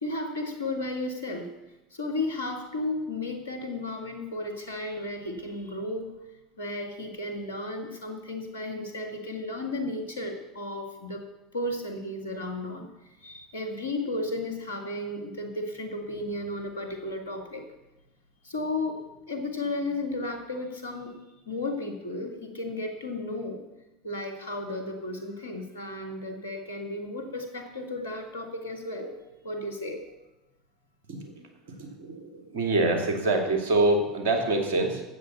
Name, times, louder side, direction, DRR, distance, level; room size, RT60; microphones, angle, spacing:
voice 1, 0.0-1.5 1.9-6.2 6.6-11.2 11.5-17.7 18.4-23.6 24.0-29.2 29.4-30.0, left 2 dB, 85° left, 4 dB, 2.0 m, -34 dB
voice 2, 31.1-31.5 31.8-35.0, right 2 dB, 70° right, 3 dB, 2.5 m, -25 dB
13.0 x 8.4 x 6.9 m, 0.98 s
hypercardioid pair, 75°, 0 cm